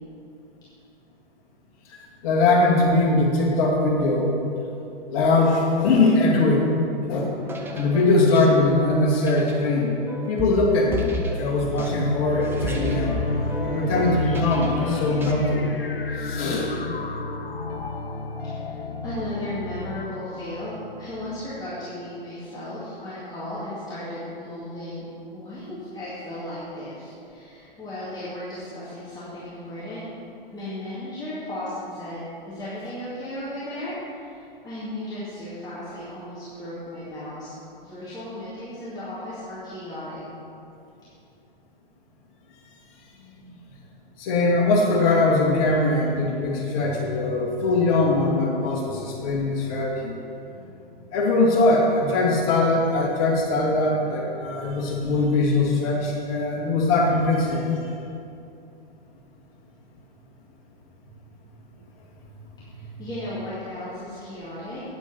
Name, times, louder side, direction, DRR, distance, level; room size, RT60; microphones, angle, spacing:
voice 1, 2.2-4.3 5.1-6.7 7.1-7.3 7.8-10.0 10.3-13.1 13.6-15.6 16.2-16.7 43.5-43.6 44.2-50.1 50.6-50.7 51.1-57.7, left 2 dB, 35° left, -3 dB, 2.4 m, -21 dB
sound 1, 7.4-15.8, equal, 10° right, 0.8 m, -34 dB
sound 2, 11.6-21.8, left 3 dB, 80° left, 0.7 m, -31 dB
voice 2, 18.4-30.0 30.5-37.5 37.8-40.2 62.7-64.8, left 1 dB, 15° left, -11 dB, 2.3 m, -35 dB
9.3 x 8.7 x 6.0 m, 2.7 s
figure-of-eight pair, 110°, 29 cm